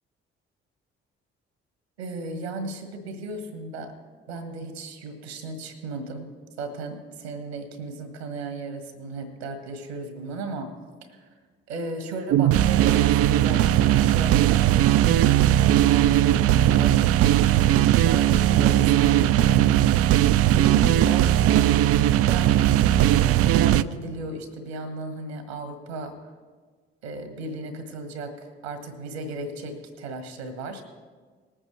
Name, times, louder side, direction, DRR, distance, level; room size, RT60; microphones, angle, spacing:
voice 1, 2.0-3.9 4.3-6.3 6.6-10.7 11.0-11.3 11.7-17.0 17.4-19.6 20.5-22.6 22.9-26.2 27.0-30.8, right 2 dB, 80° right, 8 dB, 1.6 m, -35 dB
sound 1, 12.3-23.8, right 12 dB, 50° right, 0.5 m, -19 dB
20.5 x 8.7 x 3.2 m, 1.5 s
figure-of-eight pair, 40°, 31 cm